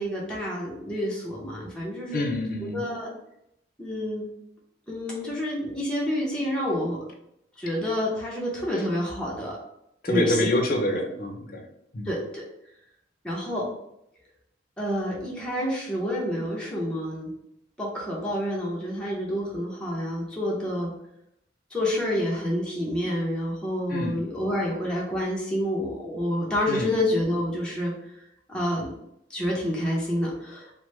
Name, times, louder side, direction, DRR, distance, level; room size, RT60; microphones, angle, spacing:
voice 1, 0.0-2.2 2.6-3.1 3.8-4.3 4.9-7.0 7.6-9.6 10.1-10.5 12.0-12.4 13.2-13.7 14.8-17.3 17.8-20.9 21.7-27.9 28.5-28.9 29.3-30.7, equal, 5° left, -5 dB, 0.7 m, -28 dB
voice 2, 2.1-2.8 10.0-11.6 11.9-12.1 23.9-24.1 26.7-26.9, left 1 dB, 55° left, 3 dB, 0.5 m, -26 dB
3.0 x 2.1 x 3.1 m, 0.79 s
head